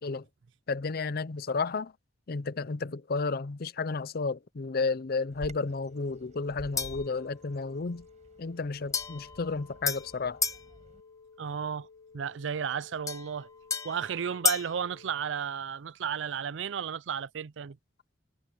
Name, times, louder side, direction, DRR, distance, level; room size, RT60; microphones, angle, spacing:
voice 1, 0.7-1.9 2.3-8.0 8.4-10.4, left 4 dB, 55° left, 0.6 m, -32 dB
Bird vocalization bird call bird song, 5.3-11.0, equal, 40° right, 7.2 m, -51 dB
sound 1, 5.4-15.4, left 5 dB, 80° left, 3.5 m, -55 dB
sound 2, 6.8-7.1 8.9-10.7 13.1-14.8, left 5 dB, 20° left, 1.1 m, -33 dB
voice 2, 11.4-11.9 12.1-13.5 13.8-17.8, right 7 dB, 75° right, 0.5 m, -33 dB
head